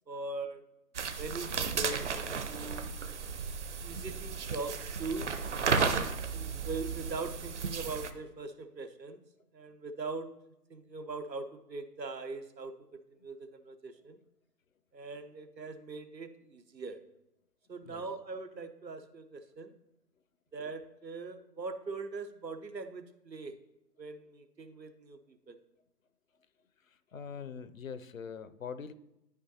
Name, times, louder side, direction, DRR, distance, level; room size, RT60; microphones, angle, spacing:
voice 1, 0.1-0.6 1.2-2.1 2.5-2.9 3.8-5.3 6.3-9.2 9.5-10.3 10.7-14.2 14.9-17.0 17.7-19.7 20.5-23.6 24.0-25.6, right 3 dB, 85° right, 8 dB, 1.0 m, -41 dB
sound 1, 0.9-8.1, right 5 dB, 45° right, 0.7 m, -34 dB
voice 2, 27.1-28.9, left 6 dB, 55° left, 13 dB, 0.6 m, -42 dB
12.0 x 5.0 x 2.8 m, 0.87 s
figure-of-eight pair, 140°, 49 cm